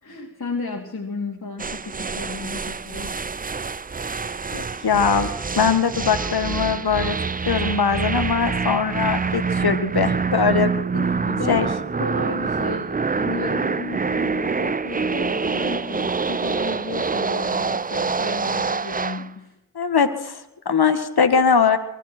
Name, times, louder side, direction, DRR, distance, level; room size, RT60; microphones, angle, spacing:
voice 1, 0.0-3.2 10.7-19.6, left 3 dB, 45° left, -2 dB, 3.2 m, -33 dB
sound 1, 1.6-19.3, right 5 dB, 20° right, 0.5 m, -26 dB
voice 2, 4.5-5.3 5.6-7.2 7.5-10.7 11.5-11.7 19.8-21.8, left 6 dB, 60° left, 8 dB, 2.0 m, -21 dB
24.0 x 13.0 x 4.6 m, 0.88 s
cardioid pair, 45°, 42 cm